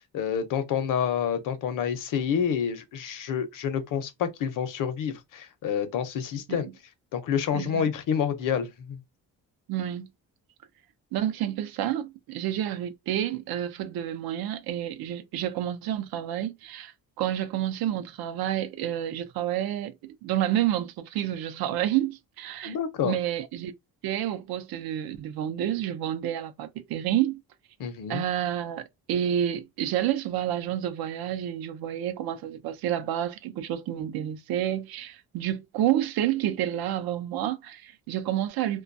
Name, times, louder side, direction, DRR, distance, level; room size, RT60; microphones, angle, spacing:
voice 1, 0.1-6.7 7.1-9.0 22.7-23.1 27.8-28.2, left 8 dB, 65° left, 0.6 m, -28 dB
voice 2, 7.5-7.9 9.7-10.1 11.1-22.8 23.0-23.7 24.0-27.4 28.1-38.8, right 11 dB, 90° right, 0.5 m, -29 dB
2.2 x 2.2 x 2.5 m
cardioid pair, 165°, 35 cm